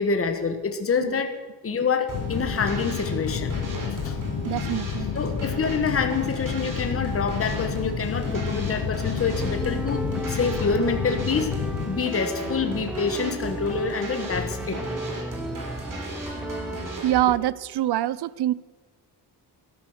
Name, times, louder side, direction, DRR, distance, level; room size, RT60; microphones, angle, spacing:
voice 1, 0.0-1.3 1.6-3.5 3.9-4.2 5.1-11.5 11.9-14.8, left 5 dB, 35° left, 6 dB, 1.2 m, -26 dB
sound 1, 2.1-11.9, left 8 dB, 55° left, 0.9 m, -30 dB
sound 2, 2.1-17.2, right 2 dB, 50° right, 3.7 m, -36 dB
voice 2, 4.4-5.1 17.0-18.5, right 14 dB, 70° right, 20 dB, 0.6 m, -24 dB
sound 3, 8.2-17.0, right 1 dB, 5° right, 0.5 m, -35 dB
13.0 x 11.5 x 6.4 m, 1.3 s
wide cardioid pair, 125°, 40 cm